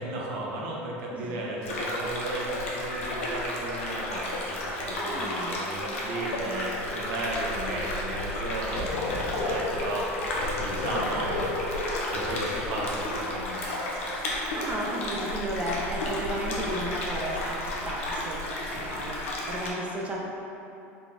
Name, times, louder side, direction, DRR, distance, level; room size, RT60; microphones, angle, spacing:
voice 1, 0.0-14.0 18.7-19.0, right 2 dB, 70° right, -3 dB, 0.7 m, -35 dB
voice 2, 1.1-1.4 5.0-5.5 10.9-11.5 14.5-20.2, right 1 dB, 20° right, -2 dB, 0.5 m, -34 dB
sound 1, 1.6-19.7, left 1 dB, 90° left, 0.6 m, -32 dB
sound 2, 8.8-13.2, left 3 dB, 45° left, 0.8 m, -33 dB
4.0 x 2.3 x 3.4 m, 2.8 s
hypercardioid pair, 90°, 7 cm